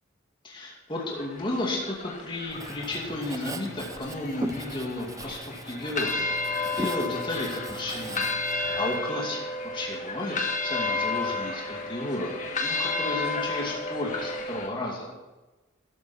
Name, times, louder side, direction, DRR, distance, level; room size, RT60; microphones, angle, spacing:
voice 1, 0.4-6.2 6.5-8.3 8.5-15.1, left 1 dB, 25° left, -3 dB, 2.4 m, -33 dB
sound 1, 0.9-14.7, left 3 dB, 40° left, 1.6 m, -32 dB
Writing, 2.5-9.0, right 2 dB, 15° right, 0.6 m, -39 dB
14.0 x 12.5 x 4.4 m, 1.1 s
head